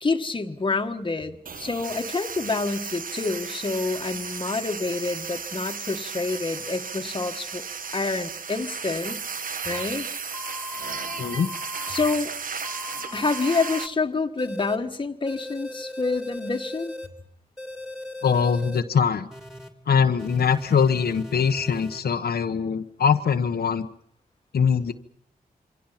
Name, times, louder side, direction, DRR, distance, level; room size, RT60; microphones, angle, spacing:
voice 1, 0.0-7.6 7.9-9.2 9.6-10.1 11.9-12.3 13.1-16.9, left 3 dB, 30° left, 5 dB, 1.6 m, -27 dB
sound 1, 1.5-13.9, right 5 dB, 60° right, 1.1 m, -34 dB
sound 2, 9.7-9.8 10.3-12.1 12.6-13.9 14.4-14.8 15.3-17.1 17.6-18.8 19.3-19.7 20.2-22.0, left 2 dB, 5° right, 2.9 m, -39 dB
voice 2, 11.2-11.5 18.2-19.3 19.9-23.9 24.5-24.9, left 6 dB, 85° left, 6 dB, 1.2 m, -22 dB
27.5 x 24.5 x 5.9 m, 0.64 s
wide cardioid pair, 105°, 16 cm